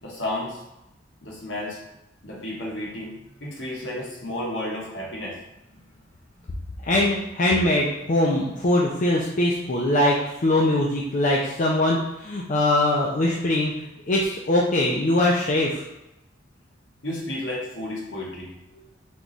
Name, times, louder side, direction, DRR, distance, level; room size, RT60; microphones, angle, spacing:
voice 1, 0.0-0.6 1.2-1.8 2.2-5.4 17.0-18.5, left 1 dB, 65° left, -4 dB, 1.2 m, -32 dB
voice 2, 6.8-15.7, left 1 dB, 40° left, -3 dB, 0.5 m, -22 dB
3.6 x 3.0 x 3.9 m, 0.90 s
head